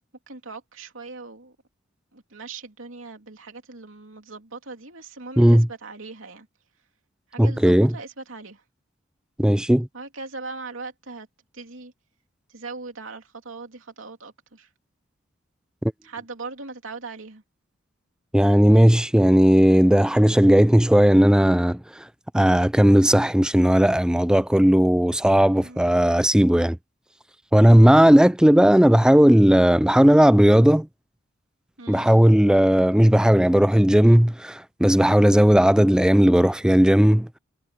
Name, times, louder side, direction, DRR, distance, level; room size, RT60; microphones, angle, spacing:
voice 1, 0.3-1.6 2.1-6.5 7.3-8.6 9.9-11.3 11.5-11.9 12.5-14.7 16.0-17.4 25.5-25.8 31.8-32.1, right 3 dB, 75° right, 3.1 m, -39 dB
voice 2, 5.4-5.7 7.4-7.9 9.4-9.9 15.8-15.9 18.3-22.0 22.3-26.8 27.5-30.9 31.9-37.3, equal, 5° right, 0.4 m, -16 dB
head